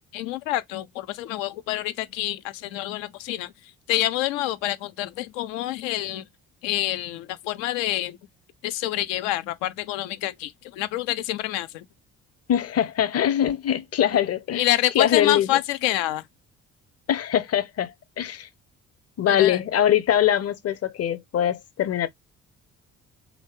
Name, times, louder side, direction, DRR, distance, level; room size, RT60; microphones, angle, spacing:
voice 1, 0.1-3.5 3.9-6.2 6.6-8.2 8.6-11.8 14.1-14.2 14.5-16.2 19.3-19.6, left 14 dB, 80° left, 0.6 m, -27 dB
voice 2, 12.5-14.7 14.9-15.6 17.1-18.5 19.2-22.1, left 10 dB, 40° left, 0.7 m, -23 dB
3.2 x 2.7 x 3.1 m
hypercardioid pair, 45°, 38 cm